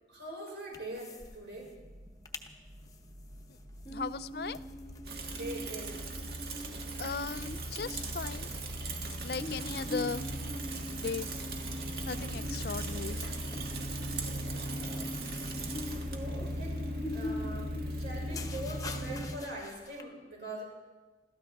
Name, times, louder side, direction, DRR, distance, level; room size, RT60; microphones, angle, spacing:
voice 1, 0.1-1.7 5.3-6.0 13.9-15.1 16.1-16.8 17.1-20.6, right 1 dB, 85° right, -3 dB, 5.9 m, -43 dB
sound 1, 0.7-1.4 1.6-1.7 2.1-2.5 2.9-20.0, left 1 dB, 20° left, 0.9 m, -44 dB
sound 2, 1.5-19.4, equal, 40° right, 1.1 m, -40 dB
voice 2, 3.9-4.6 7.0-8.5 9.2-10.3 10.9-11.3 12.0-13.2, left 5 dB, 60° left, 14 dB, 0.5 m, -37 dB
Bicycle / Mechanisms, 5.0-19.3, right 4 dB, 60° right, 1.6 m, -42 dB
28.5 x 13.5 x 3.6 m, 1.2 s
head